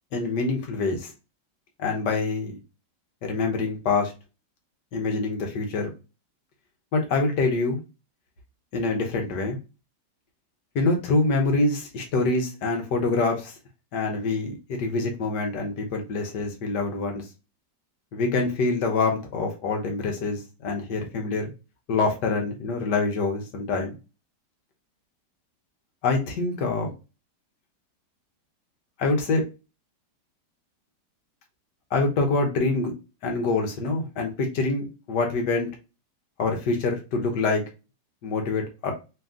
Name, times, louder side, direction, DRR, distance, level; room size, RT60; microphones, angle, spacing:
voice 1, 0.1-1.1 1.8-2.6 3.2-4.1 4.9-5.9 6.9-7.8 8.7-9.6 10.7-13.5 13.9-17.2 18.1-21.5 21.9-23.9 26.0-26.9 29.0-29.4 31.9-32.9 33.2-35.7 36.4-37.6 38.2-38.9, left 3 dB, 75° left, 2 dB, 1.6 m, -25 dB
3.4 x 2.8 x 3.6 m, 0.29 s
omnidirectional pair, 1.9 m